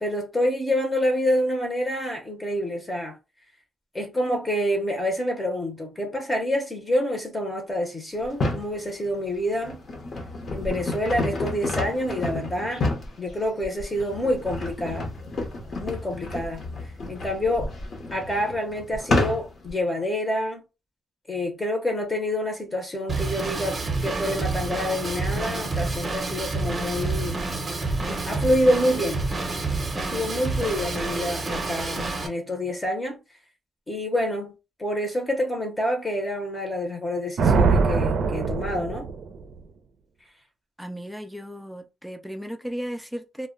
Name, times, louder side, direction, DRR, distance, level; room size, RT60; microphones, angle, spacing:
voice 1, 0.0-3.2 3.9-9.8 10.5-12.9 13.2-15.1 15.7-16.7 17.1-17.7 18.1-20.6 21.3-27.4 28.1-29.2 30.0-33.2 33.9-39.1, left 1 dB, 20° left, 0.7 m, -27 dB
sound 1, 8.2-8.7 9.4-19.7, left 2 dB, 50° left, 0.8 m, -30 dB
Drum kit / Drum, 23.1-32.3, right 3 dB, 25° right, 0.7 m, -28 dB
Thunder, 37.4-39.6, right 4 dB, 70° right, 0.4 m, -22 dB
voice 2, 40.8-43.5, equal, ahead, 0.3 m, -35 dB
2.1 x 2.0 x 3.7 m
cardioid pair, 125°, 0 cm